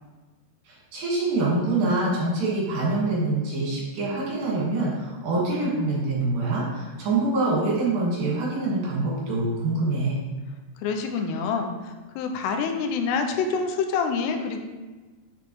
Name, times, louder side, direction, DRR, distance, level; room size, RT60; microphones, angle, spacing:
voice 1, 0.7-10.2, right 2 dB, 60° right, -5 dB, 3.0 m, -25 dB
voice 2, 10.8-14.6, left 5 dB, 85° left, 5 dB, 2.7 m, -27 dB
6.7 x 5.1 x 3.0 m, 1.3 s
omnidirectional pair, 4.8 m